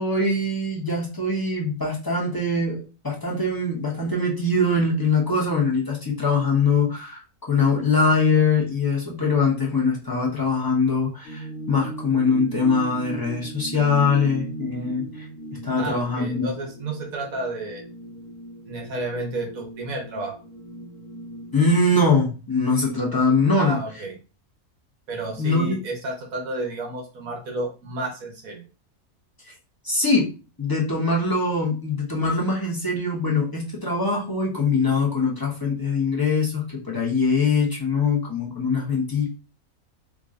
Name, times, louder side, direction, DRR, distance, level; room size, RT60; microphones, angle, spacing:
voice 1, 0.0-7.2 7.5-15.3 15.6-16.5 21.5-23.8 25.4-25.8 29.5-29.6 29.8-30.3 30.6-39.3, left 3 dB, 20° left, -4 dB, 0.7 m, -22 dB
sound 1, 11.2-21.8, right 1 dB, 65° left, 1.5 m, -37 dB
voice 2, 15.8-17.8 18.7-20.3 23.6-24.1 25.1-28.7, right 2 dB, 70° right, 2 dB, 1.3 m, -31 dB
4.5 x 2.6 x 2.5 m, 0.33 s
omnidirectional pair, 1.6 m